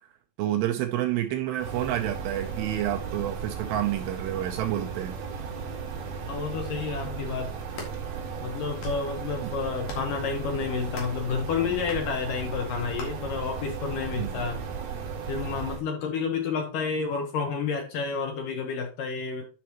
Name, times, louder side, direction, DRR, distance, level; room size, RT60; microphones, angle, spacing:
voice 1, 0.4-5.2 9.4-9.5 14.2-14.4, right 12 dB, 80° right, 2.6 m, -29 dB
sound 1, 1.6-15.8, right 5 dB, 65° right, 3.0 m, -35 dB
voice 2, 6.3-7.5 8.4-14.6 15.3-19.5, left 5 dB, 70° left, 2.1 m, -30 dB
sound 2, 7.7-7.9 8.6-9.1 9.8-10.2 10.9-11.2 11.9-12.1 13.0-13.1, left 1 dB, 55° left, 3.2 m, -38 dB
10.5 x 5.4 x 2.9 m
omnidirectional pair, 5.4 m